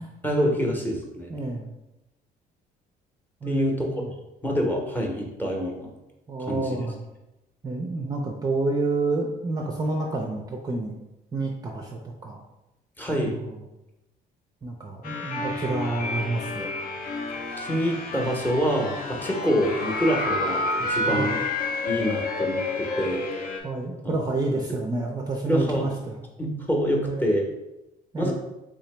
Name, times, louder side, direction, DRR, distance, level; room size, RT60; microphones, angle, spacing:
voice 1, 0.2-1.3 3.4-3.9 4.4-5.9 6.4-6.8 13.0-13.4 17.6-21.4 21.8-23.2 25.5-25.8 26.4-27.5 28.2-28.3, equal, 10° left, 0 dB, 0.8 m, -26 dB
voice 2, 1.3-1.7 3.4-4.1 6.3-7.0 7.6-11.0 11.3-12.4 13.1-13.6 14.6-16.7 21.1-21.4 23.6-26.2 27.0-27.3 28.1-28.3, right 3 dB, 25° right, 0 dB, 0.4 m, -29 dB
sound 1, 15.0-23.6, left 2 dB, 60° left, 0.6 m, -29 dB
3.5 x 2.9 x 3.2 m, 0.96 s
cardioid pair, 110°, 17 cm